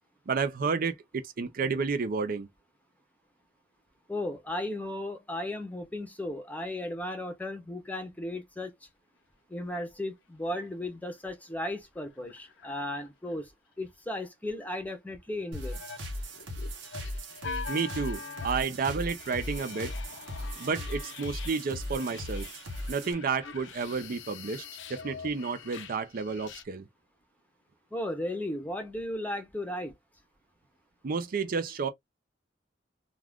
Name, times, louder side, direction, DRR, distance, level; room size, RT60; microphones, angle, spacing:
voice 1, 0.3-2.5 17.7-19.9 20.6-22.5 22.9-24.6 24.9-26.9 31.0-31.9, right 5 dB, 50° right, 0.5 m, -31 dB
voice 2, 4.1-8.7 9.5-13.5 13.8-15.8 27.9-29.9, left 1 dB, 10° left, 0.7 m, -35 dB
sound 1, 10.5-10.9 11.2-11.3 11.5-13.4 15.4-26.6, left 5 dB, 75° left, 0.5 m, -44 dB
sound 2, 15.5-23.1, equal, 80° right, 1.0 m, -38 dB
2.4 x 2.3 x 3.4 m
head